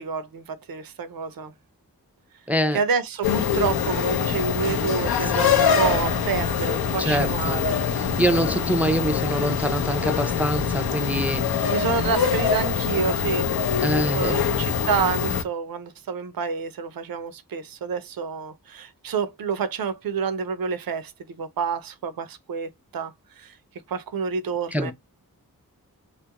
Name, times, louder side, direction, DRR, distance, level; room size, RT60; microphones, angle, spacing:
voice 1, 0.0-1.5 2.7-7.8 11.0-11.4 11.7-13.5 14.1-23.5 23.9-24.9, right 6 dB, 75° right, 0.5 m, -28 dB
voice 2, 2.5-2.8 5.3-5.4 7.0-11.7 13.8-14.4 24.7-24.9, equal, 5° right, 0.4 m, -25 dB
sound 1, 3.2-15.4, left 7 dB, 85° left, 0.5 m, -24 dB
2.4 x 2.0 x 2.8 m
wide cardioid pair, 55°, 36 cm